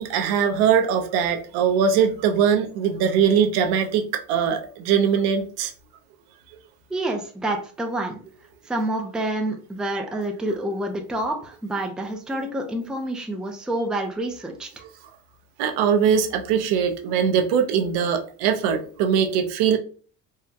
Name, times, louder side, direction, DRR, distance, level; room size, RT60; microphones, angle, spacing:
voice 1, 0.0-5.7 15.6-19.8, right 7 dB, 80° right, 5 dB, 0.7 m, -21 dB
voice 2, 6.9-8.2 8.7-14.7, right 1 dB, ahead, 3 dB, 0.4 m, -28 dB
3.6 x 2.1 x 2.7 m, 0.40 s
cardioid pair, 120°, 37 cm